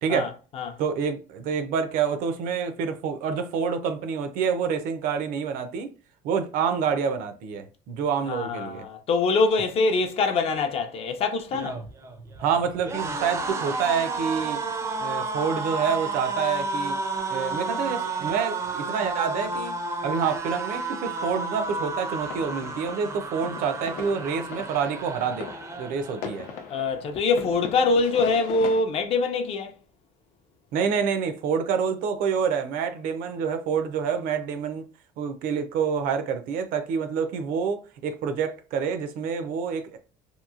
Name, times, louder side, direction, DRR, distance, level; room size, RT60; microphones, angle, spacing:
voice 1, 0.1-0.8 8.3-11.8 26.7-29.7, left 3 dB, 40° left, 0.5 m, -24 dB
voice 2, 0.8-5.9 6.2-8.9 12.4-14.6 15.0-17.0 17.3-19.7 20.0-25.5 25.8-26.5 30.7-34.8 35.2-40.0, right 6 dB, 70° right, 0.5 m, -27 dB
sound 1, 11.4-26.6 26.9-27.2 27.4-28.2, right 3 dB, 20° right, 0.4 m, -32 dB
sound 2, 22.2-28.8, left 6 dB, 85° left, 0.7 m, -40 dB
2.9 x 2.6 x 2.4 m
cardioid pair, 155°, 15 cm